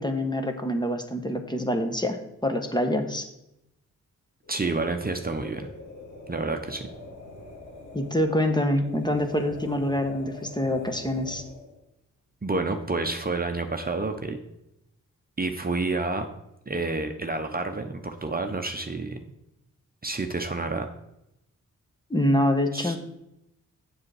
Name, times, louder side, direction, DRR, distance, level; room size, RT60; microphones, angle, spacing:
voice 1, 0.0-3.3 7.9-11.4 22.1-23.0, left 1 dB, 15° left, 5 dB, 1.1 m, -26 dB
sound 1, 4.4-11.8, left 2 dB, 55° left, 2.6 m, -44 dB
voice 2, 4.5-5.7 6.3-6.9 12.4-14.4 15.4-16.3 16.7-19.2 20.0-20.9 22.7-23.0, right 3 dB, 25° right, 5 dB, 0.9 m, -29 dB
7.4 x 6.5 x 4.8 m, 0.85 s
cardioid pair, 50°, 33 cm